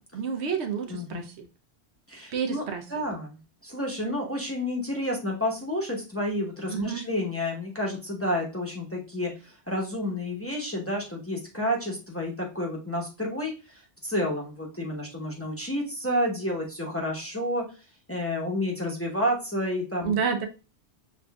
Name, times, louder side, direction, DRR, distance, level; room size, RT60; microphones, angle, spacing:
voice 1, 0.1-1.3 2.3-2.8 6.7-7.0 20.0-20.5, right 6 dB, 75° right, 5 dB, 1.0 m, -29 dB
voice 2, 0.9-1.2 2.1-2.6 2.9-17.6 18.1-20.1, left 1 dB, 15° left, -2 dB, 0.9 m, -30 dB
6.8 x 2.5 x 2.2 m, 0.32 s
omnidirectional pair, 1.1 m